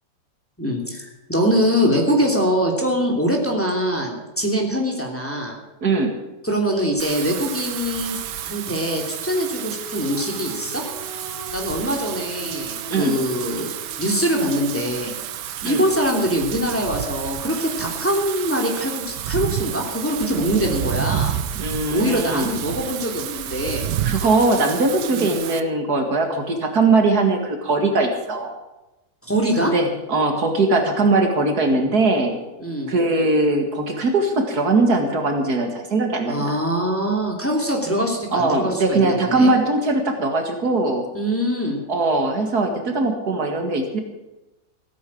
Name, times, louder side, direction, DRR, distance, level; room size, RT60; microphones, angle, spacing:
voice 1, 0.6-5.6 6.4-8.2 8.4-10.8 11.5-13.7 14.0-15.2 15.4-21.3 21.9-23.9 25.1-25.3 29.2-29.7 32.6-32.9 36.3-39.5 41.1-41.8, equal, 5° left, 0 dB, 3.0 m, -23 dB
voice 2, 5.8-6.2 12.9-13.2 15.6-15.8 21.6-22.5 24.0-28.5 29.6-32.3 32.9-36.6 38.3-41.0 41.9-44.0, right 3 dB, 65° right, 4 dB, 2.4 m, -20 dB
Wind / Rain, 7.0-25.6, right 10 dB, 85° right, 1.4 m, -30 dB
sound 1, 9.3-14.7, left 1 dB, 30° left, 4.4 m, -40 dB
16.5 x 9.5 x 8.6 m, 1.0 s
omnidirectional pair, 1.8 m